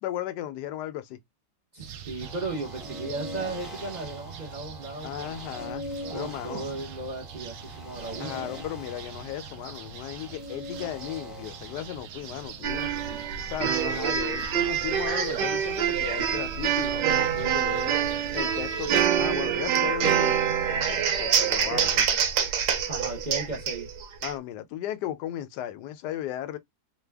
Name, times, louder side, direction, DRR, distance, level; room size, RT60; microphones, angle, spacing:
voice 1, 0.0-1.2 5.0-5.8 6.1-6.7 8.2-12.9 13.4-18.0 18.3-20.4 20.7-22.1 24.2-26.6, left 12 dB, 80° left, 1.1 m, -35 dB
voice 2, 1.7-5.4 6.1-8.5 22.9-23.9, right 3 dB, 40° right, 0.6 m, -36 dB
sound 1, 1.8-19.1, right 7 dB, 70° right, 0.9 m, -43 dB
sound 2, 2.2-12.0, left 1 dB, ahead, 0.7 m, -42 dB
sound 3, 12.6-24.3, right 8 dB, 85° right, 1.3 m, -26 dB
3.3 x 2.2 x 3.3 m
omnidirectional pair, 1.8 m